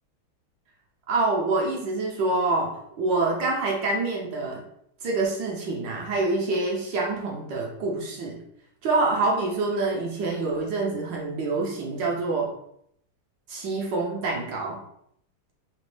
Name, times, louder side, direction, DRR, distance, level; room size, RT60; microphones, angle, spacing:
voice 1, 1.1-4.6 5.0-8.4 8.8-12.5 13.5-14.8, right 3 dB, 70° right, -2 dB, 1.3 m, -26 dB
4.0 x 2.5 x 3.1 m, 0.70 s
omnidirectional pair, 2.4 m